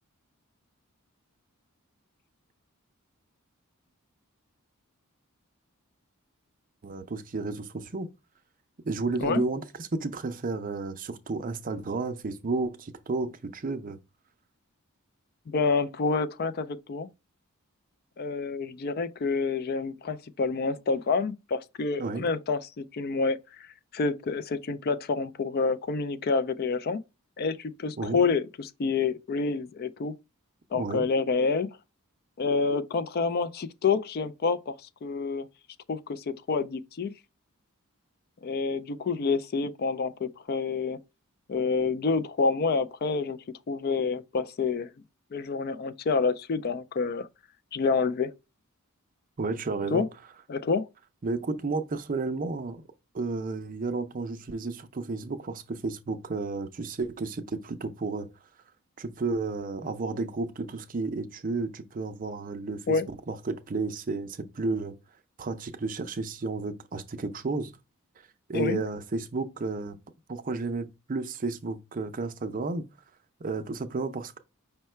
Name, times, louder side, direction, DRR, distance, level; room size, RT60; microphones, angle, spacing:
voice 1, 6.8-8.1 8.8-14.0 22.0-22.3 28.0-28.2 30.7-31.0 49.4-50.0 51.2-52.8 53.1-58.3 59.0-63.0 63.3-65.0 65.4-67.7 68.5-70.0 70.3-72.8 73.4-74.4, right 3 dB, 40° right, 0.5 m, -32 dB
voice 2, 15.5-17.1 18.2-23.7 23.9-27.0 27.4-30.1 30.7-31.7 32.4-34.8 35.0-35.5 35.9-37.1 38.4-41.0 41.5-43.4 43.7-44.9 45.3-47.3 47.7-48.3 49.9-50.1 50.5-50.9 62.9-63.1 68.5-68.8, left 4 dB, 45° left, 0.4 m, -28 dB
5.5 x 2.2 x 4.3 m
head